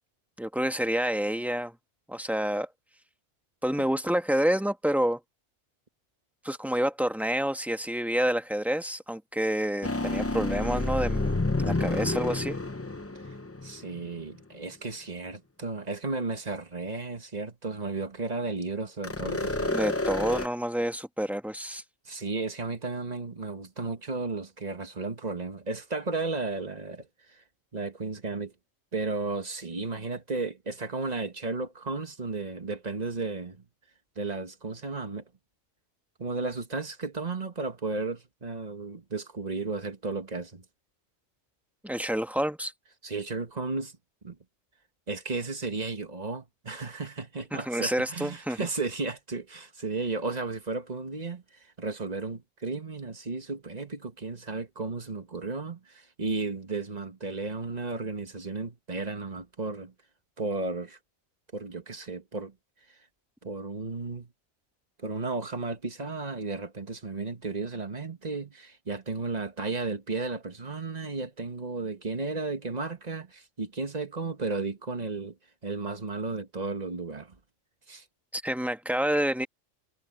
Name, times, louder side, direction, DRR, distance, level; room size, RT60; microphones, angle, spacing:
voice 1, 0.4-1.7 2.1-2.7 3.6-5.2 6.4-12.6 19.7-21.8 41.8-42.7 47.5-48.6 78.3-79.5, equal, ahead, 1.2 m, -28 dB
sound 1, 9.8-14.1 19.0-20.5, left 2 dB, 15° left, 0.6 m, -29 dB
voice 2, 13.6-19.8 22.1-27.1 27.3-27.4 27.7-28.5 28.9-33.6 34.2-35.2 36.2-40.6 43.0-43.9 44.2-44.4 45.1-51.4 51.8-59.9 60.4-61.0 61.5-62.5 63.4-64.3 65.0-75.4 75.6-77.4 77.9-78.0, right 3 dB, 35° right, 1.7 m, -34 dB
omnidirectional pair, 1.2 m